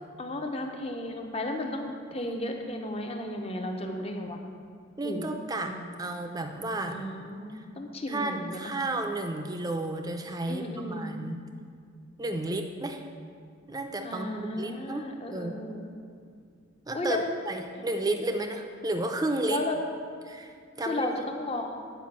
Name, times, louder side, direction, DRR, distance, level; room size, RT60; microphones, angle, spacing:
voice 1, 0.2-4.4 5.0-5.4 5.6-6.0 6.8-8.6 10.5-11.1 14.0-15.9 16.9-17.3 17.7-17.8 19.5-19.8 20.8-21.8, left 1 dB, 30° left, 3 dB, 0.8 m, -34 dB
voice 2, 5.0-5.7 6.0-7.0 7.5-7.6 8.1-11.4 12.2-13.0 13.7-14.3 14.6-15.0 15.3-15.6 16.9-17.2 17.5-19.6 20.3-21.1, right 2 dB, 20° right, 5 dB, 0.5 m, -32 dB
9.2 x 5.1 x 7.3 m, 2.2 s
head